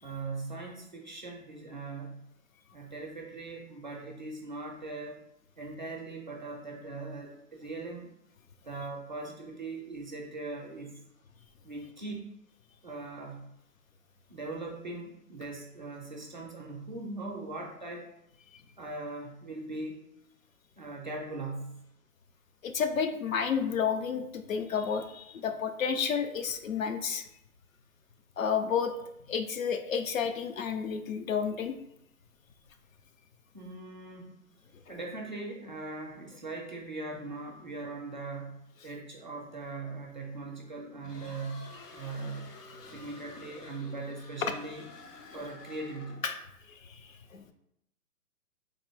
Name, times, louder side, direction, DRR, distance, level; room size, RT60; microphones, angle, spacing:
voice 1, 0.0-2.3 2.7-5.2 5.6-8.1 8.6-11.0 11.6-12.3 12.8-13.5 14.3-18.1 18.8-20.2 20.8-21.8 33.5-34.4 34.9-42.5 42.9-44.8 45.3-46.2, right 3 dB, 35° right, -1 dB, 0.4 m, -40 dB
voice 2, 22.6-27.2 28.4-31.7 45.3-45.4 46.2-46.4 46.7-47.5, left 6 dB, 60° left, 8 dB, 0.6 m, -31 dB
sound 1, 41.0-46.4, left 3 dB, 90° left, 0.8 m, -50 dB
3.8 x 2.6 x 3.3 m, 0.79 s
hypercardioid pair, 140°, 46 cm